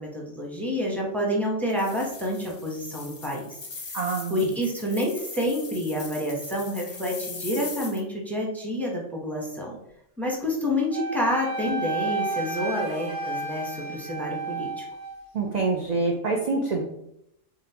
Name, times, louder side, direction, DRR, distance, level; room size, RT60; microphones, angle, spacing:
voice 1, 0.0-3.6 4.3-9.8 10.2-14.8, left 1 dB, ahead, -2 dB, 0.7 m, -28 dB
sound 1, 1.7-8.0, left 4 dB, 40° left, 0.6 m, -40 dB
voice 2, 3.9-4.5 15.3-16.8, right 3 dB, 60° right, 1 dB, 0.4 m, -26 dB
Wind instrument woodwind instrument, 10.9-15.2, right 3 dB, 80° right, 1.7 m, -32 dB
3.7 x 3.5 x 2.8 m, 0.78 s
omnidirectional pair, 1.3 m